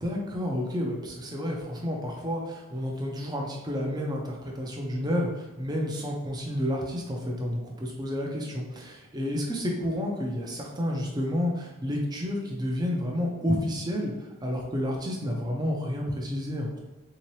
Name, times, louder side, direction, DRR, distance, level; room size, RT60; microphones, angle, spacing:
voice 1, 0.0-16.8, equal, 20° right, -1 dB, 0.5 m, -30 dB
3.7 x 2.8 x 3.1 m, 1.1 s
head